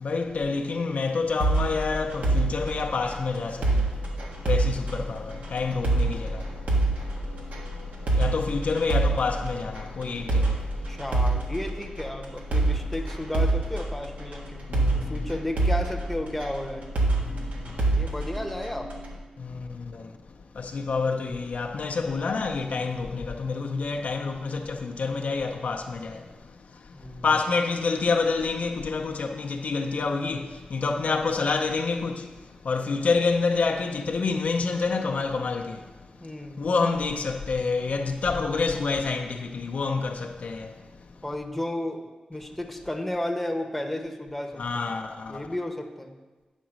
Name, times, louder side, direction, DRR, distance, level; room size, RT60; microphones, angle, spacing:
voice 1, 0.0-3.6 4.5-5.2 5.5-6.3 8.2-10.4 14.7-15.0 19.4-19.7 20.6-26.2 27.2-30.4 30.7-32.2 32.7-35.8 36.6-40.7 44.6-45.3, left 4 dB, 75° left, 0.6 m, -27 dB
sound 1, 1.4-19.2, right 2 dB, 85° right, 1.5 m, -27 dB
voice 2, 10.9-14.7 14.9-16.9 17.9-18.9 26.9-27.3 36.2-36.7 41.2-44.8 45.3-46.1, left 1 dB, 5° left, 0.9 m, -33 dB
9.0 x 4.0 x 6.2 m
cardioid pair, 70°, 3 cm